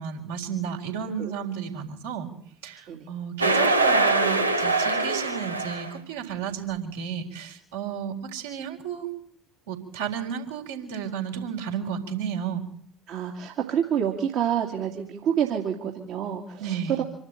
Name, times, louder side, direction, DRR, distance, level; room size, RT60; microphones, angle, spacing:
voice 1, 0.0-2.3 2.6-9.1 9.7-12.7 16.6-17.0, right 8 dB, 70° right, 1 dB, 4.1 m, -32 dB
sound 1, 3.4-6.0, right 2 dB, 85° right, 1.1 m, -23 dB
voice 2, 13.1-17.0, right 9 dB, 55° right, 0 dB, 2.4 m, -28 dB
26.0 x 12.5 x 9.1 m, 0.67 s
figure-of-eight pair, 60°, 0 cm